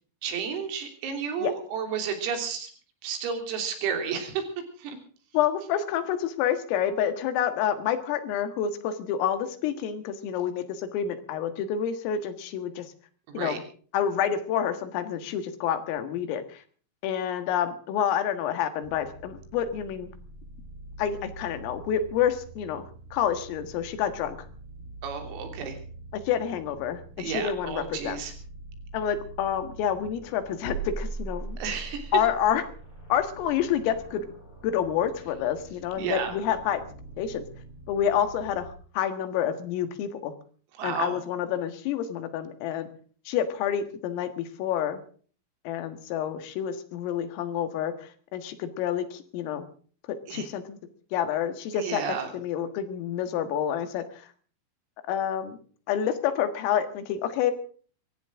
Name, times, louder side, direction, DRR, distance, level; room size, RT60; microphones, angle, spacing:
voice 1, 0.2-2.7 3.0-4.4 4.8-5.0 13.3-13.6 25.0-25.8 27.2-28.3 31.6-32.2 36.0-36.4 40.8-41.2 50.3-50.5 51.7-52.3, right 7 dB, 85° right, 5 dB, 5.9 m, -32 dB
voice 2, 5.3-12.9 13.3-13.6 13.9-16.6 17.0-20.1 21.0-22.8 23.1-24.5 26.3-28.2 28.9-31.6 32.1-32.6 33.1-34.3 34.6-36.8 37.2-37.4 37.9-40.3 40.8-42.9 43.3-45.0 45.7-47.9 48.3-49.7 50.1-50.8 51.1-52.0 52.3-54.0 55.1-55.6 55.9-57.5, left 9 dB, 80° left, 10 dB, 4.2 m, -28 dB
sound 1, 18.8-38.8, right 3 dB, 10° left, 7.8 m, -43 dB
23.0 x 15.5 x 3.7 m, 0.43 s
omnidirectional pair, 6.0 m